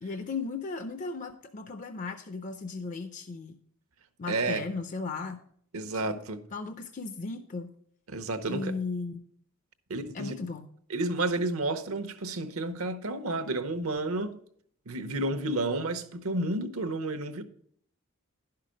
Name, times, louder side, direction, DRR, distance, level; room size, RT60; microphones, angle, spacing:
voice 1, 0.0-3.6 4.2-5.4 6.5-7.7 8.5-9.2 10.1-10.7, left 4 dB, 35° left, 0.5 m, -36 dB
voice 2, 4.3-4.6 5.7-6.4 8.1-8.7 9.9-10.4 10.9-14.4 14.9-17.4, right 2 dB, 75° right, 0.9 m, -31 dB
11.5 x 5.7 x 5.1 m
head